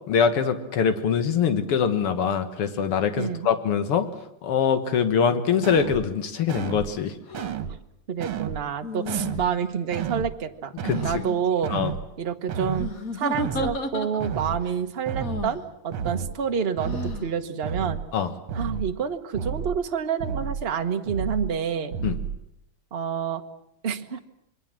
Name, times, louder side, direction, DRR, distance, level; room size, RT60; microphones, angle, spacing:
voice 1, 0.1-4.1 4.4-7.1 10.8-11.2 11.7-11.9 18.1-18.3 22.0-22.2, left 7 dB, 90° left, 9 dB, 2.4 m, -23 dB
voice 2, 3.2-3.5 8.1-10.7 11.0-11.7 12.2-18.0 18.5-21.9 22.9-23.4 23.8-24.2, right 7 dB, 35° right, 6 dB, 1.1 m, -28 dB
sound 1, 5.6-6.1 6.5-6.9 7.3-7.8 8.2-8.6 9.1-9.5 9.9-10.3 10.8-11.2 11.6-12.1 12.5-12.9 13.3-13.8 14.2-14.6 15.1-15.5 15.9-16.3 16.8-17.2 17.6-18.1 18.5-18.9 19.3-19.8 20.2-20.7 21.1-21.5 21.9-22.4, right 7 dB, 75° right, 2.1 m, -31 dB
sound 2, 7.3-7.5 8.8-9.7 10.8-11.4 12.7-14.5 15.2-15.6 16.8-17.3, left 3 dB, 40° left, 2.0 m, -33 dB
27.0 x 22.0 x 7.6 m, 0.81 s
omnidirectional pair, 2.4 m